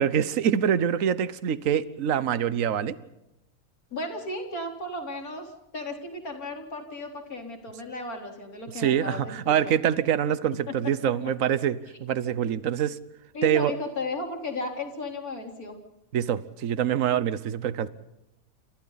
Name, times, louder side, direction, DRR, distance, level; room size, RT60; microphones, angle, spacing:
voice 1, 0.0-3.0 8.7-13.0 13.4-13.7 16.1-17.9, right 9 dB, 65° right, 15 dB, 1.3 m, -25 dB
voice 2, 3.9-9.7 10.7-10.9 13.3-15.8, left 2 dB, 85° left, 3 dB, 4.5 m, -35 dB
28.5 x 27.5 x 4.1 m, 0.93 s
omnidirectional pair, 1.5 m